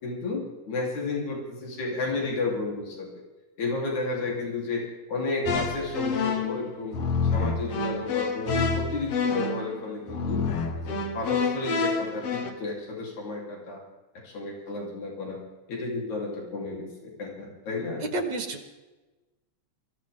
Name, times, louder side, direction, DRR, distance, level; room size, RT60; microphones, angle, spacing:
voice 1, 0.0-3.1 3.6-7.0 7.3-10.4 10.8-13.8 14.2-15.4 15.7-18.0, left 3 dB, 75° left, -2 dB, 4.8 m, -32 dB
sound 1, 5.5-12.5, left 4 dB, 60° left, 2.4 m, -28 dB
voice 2, 18.1-18.7, right 2 dB, 50° right, 6 dB, 1.5 m, -30 dB
23.0 x 15.5 x 3.6 m, 1.2 s
omnidirectional pair, 3.3 m